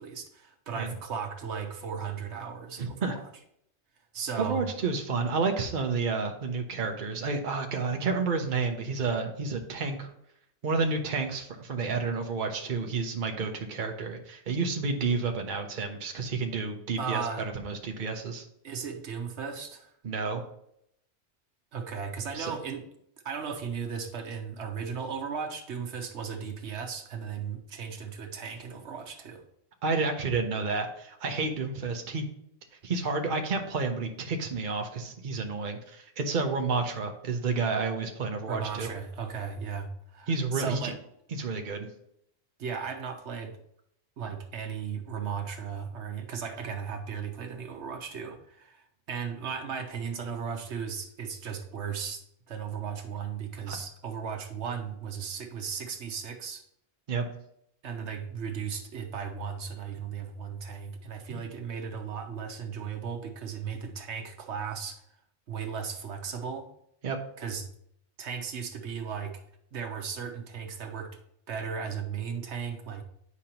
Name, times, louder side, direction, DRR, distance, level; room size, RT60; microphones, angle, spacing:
voice 1, 0.0-3.3 4.1-4.7 17.0-17.4 18.6-19.9 21.7-22.8 23.2-29.4 38.5-41.0 42.6-43.6 44.2-56.6 57.8-65.0 65.5-66.7 67.4-67.7 68.2-69.4 69.7-71.2 71.5-73.0, right 6 dB, 80° right, 4 dB, 1.2 m, -36 dB
voice 2, 2.8-3.1 4.4-10.1 10.6-18.4 20.0-20.4 22.3-22.6 29.8-32.2 32.8-38.9 40.3-40.8 41.4-41.9 53.7-53.8 57.1-57.2 61.3-61.4 67.0-67.2, right 4 dB, 50° right, 4 dB, 1.0 m, -30 dB
9.7 x 5.1 x 2.9 m, 0.73 s
omnidirectional pair, 1.2 m